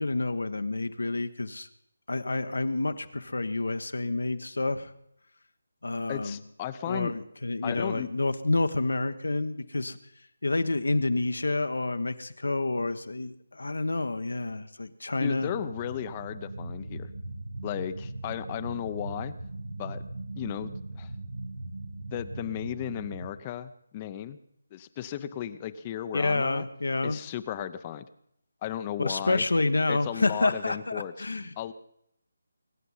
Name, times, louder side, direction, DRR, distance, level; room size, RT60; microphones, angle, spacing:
voice 1, 0.0-1.7 2.1-4.9 5.8-6.4 6.9-10.0 10.4-15.5 26.1-27.2 29.0-31.5, left 2 dB, 80° left, 9 dB, 1.2 m, -28 dB
voice 2, 6.1-7.1 7.6-8.1 15.2-17.1 17.6-19.3 19.8-20.0 20.3-21.1 22.1-24.4 24.7-26.6 27.0-28.1 28.6-29.4 29.9-31.3 31.6-31.7, left 11 dB, 25° left, 13 dB, 0.7 m, -35 dB
sound 1, 15.5-23.3, right 2 dB, 80° right, 1.6 m, -39 dB
23.0 x 9.3 x 5.6 m, 0.73 s
figure-of-eight pair, 160°, 0 cm